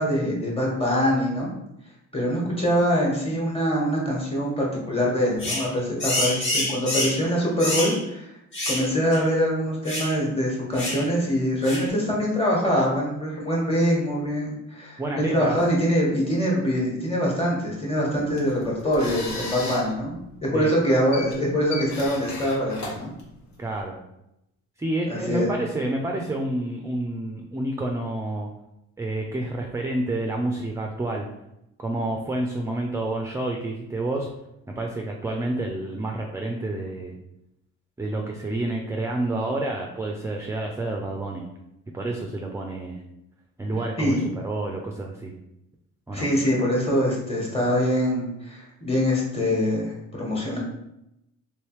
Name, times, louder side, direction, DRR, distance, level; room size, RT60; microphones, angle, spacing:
voice 1, 0.0-1.5 2.1-8.3 8.7-20.1 20.4-23.1 25.0-25.5 43.7-44.2 46.1-50.6, equal, 20° left, -3 dB, 1.4 m, -24 dB
sound 1, 5.4-5.7 6.0-7.2 7.6-8.0 8.5-8.9 9.1-9.2 9.9-10.1 10.8-11.0 11.6-11.9, left 1 dB, 40° left, 1.4 m, -27 dB
voice 2, 15.0-15.6 20.5-20.7 23.6-24.0 24.8-28.5 29.0-31.3 31.8-34.3 34.7-37.2 38.0-41.4 41.9-43.0 43.6-45.3 46.1-46.3, right 2 dB, 10° right, 1 dB, 0.4 m, -29 dB
sound 2, 18.1-23.8, left 3 dB, 65° left, 1.2 m, -37 dB
3.2 x 3.1 x 3.1 m, 0.85 s
cardioid pair, 90°, 30 cm